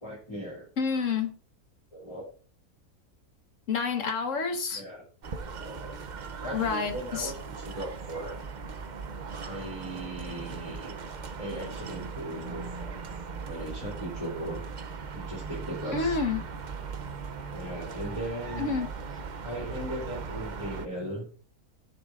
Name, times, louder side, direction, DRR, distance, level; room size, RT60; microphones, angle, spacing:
voice 1, 0.0-0.7 1.9-2.3 4.7-5.1 5.4-6.0 6.4-8.4 9.4-10.9 11.4-13.0 13.4-14.6 15.1-16.2 17.5-18.8 19.4-21.3, equal, 20° left, 2.9 m, -38 dB
voice 2, 0.8-1.3 3.7-4.8 6.5-7.3 15.9-16.4 18.6-18.9, left 5 dB, 55° left, 1.6 m, -28 dB
sound 1, 5.2-20.9, right 5 dB, 50° right, 0.5 m, -39 dB
16.0 x 6.7 x 2.5 m
omnidirectional pair, 1.6 m